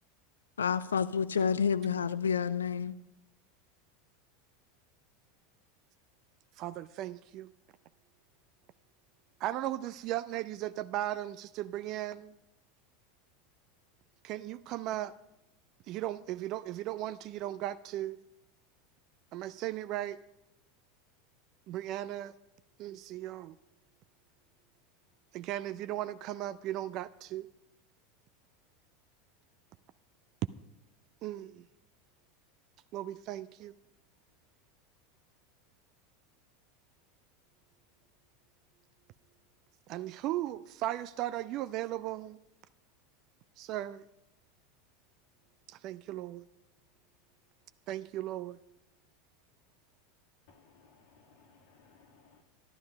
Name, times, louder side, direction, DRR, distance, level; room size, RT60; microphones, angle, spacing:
voice 1, 0.6-3.0, left 6 dB, 75° left, 0.5 m, -29 dB
voice 2, 6.6-7.5 9.4-12.3 14.2-15.1 15.9-18.2 19.3-20.2 21.7-22.3 22.8-23.6 25.3-27.5 31.2-31.6 32.9-33.7 39.9-42.4 43.6-44.0 45.7-46.4 47.9-48.6, right 14 dB, 45° right, 0.4 m, -37 dB
voice 3, 50.5-52.4, left 4 dB, 55° left, 1.6 m, -62 dB
13.0 x 12.0 x 5.2 m
figure-of-eight pair, 80°, 0 cm